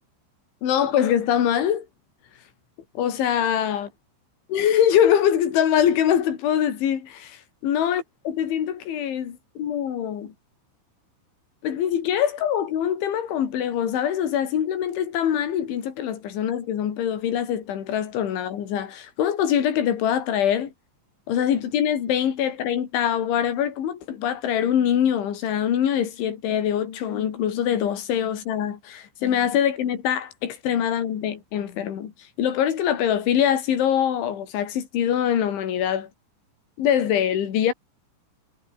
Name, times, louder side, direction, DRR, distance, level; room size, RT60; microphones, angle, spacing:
voice 1, 0.6-1.9 3.0-3.9 4.5-10.3 11.6-20.7 21.3-32.1 32.4-36.1 36.8-37.7, left 9 dB, 80° left, 5.5 m, -23 dB
omnidirectional pair, 5.3 m